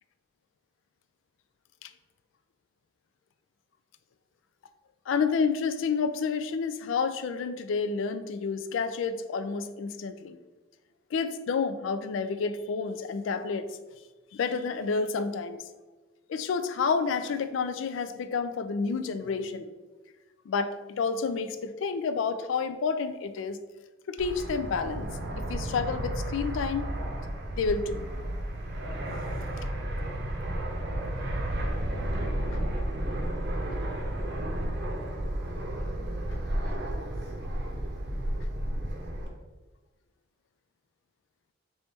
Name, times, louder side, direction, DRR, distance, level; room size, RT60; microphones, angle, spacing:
voice 1, 5.1-10.4 11.1-13.6 14.3-15.6 16.3-19.7 20.5-23.6 24.1-26.9 27.5-28.1 32.5-32.6, left 5 dB, 75° left, 10 dB, 0.3 m, -30 dB
Fixed-wing aircraft airplane, 24.2-39.3, right 1 dB, 55° right, 0.6 m, -32 dB
3.4 x 3.0 x 4.2 m, 1.2 s
head